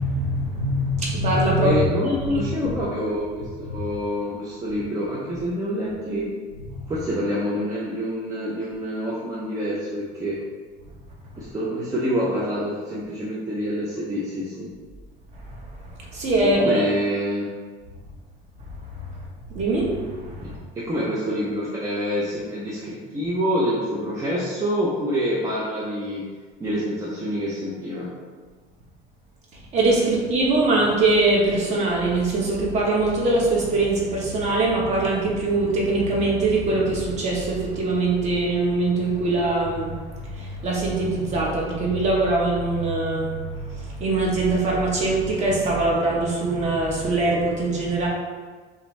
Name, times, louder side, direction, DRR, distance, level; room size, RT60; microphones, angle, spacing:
voice 1, 0.0-1.8 2.2-2.7 3.7-3.8 6.7-6.8 15.4-15.5 16.1-16.7 19.1-19.2 19.5-20.6 29.7-48.1, right 2 dB, 35° right, -3 dB, 1.0 m, -22 dB
voice 2, 1.6-6.3 6.9-10.4 11.4-14.7 16.4-17.5 20.4-26.2 26.6-28.1, equal, 15° right, -6 dB, 0.5 m, -27 dB
6.4 x 2.6 x 3.2 m, 1.4 s
cardioid pair, 175°, 21 cm